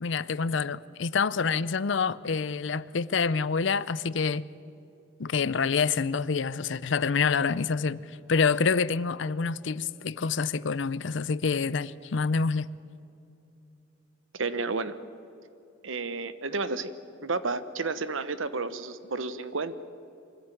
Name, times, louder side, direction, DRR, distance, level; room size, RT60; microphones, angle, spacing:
voice 1, 0.0-4.4 5.2-12.7, left 5 dB, 65° left, 0.6 m, -27 dB
voice 2, 14.4-15.0 15.8-16.9 17.2-19.7, right 3 dB, 75° right, 1.0 m, -31 dB
24.0 x 14.5 x 9.1 m
head